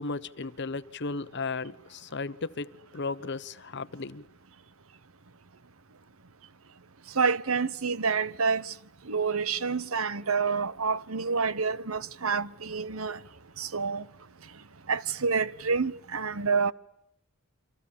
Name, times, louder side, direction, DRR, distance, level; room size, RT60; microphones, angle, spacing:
voice 1, 0.0-4.2, left 3 dB, 55° left, 1.0 m, -35 dB
voice 2, 7.1-8.7 9.1-13.2 13.6-14.0 14.9-16.7, right 5 dB, 70° right, 1.0 m, -28 dB
29.5 x 25.5 x 7.3 m
head